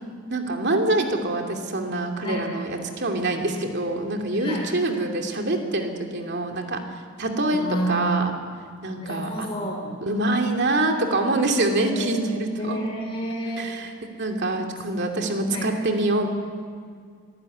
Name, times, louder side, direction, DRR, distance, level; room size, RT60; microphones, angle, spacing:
voice 1, 0.3-8.3 8.8-9.5 10.0-12.8 13.6-13.9 14.2-16.3, right 2 dB, 55° right, 3 dB, 2.8 m, -25 dB
voice 2, 4.3-4.7 7.5-8.4 9.0-10.0 11.9-12.3 12.6-13.7 15.5-15.7, right 1 dB, 25° left, -2 dB, 2.8 m, -30 dB
22.5 x 16.0 x 9.6 m, 2.1 s
head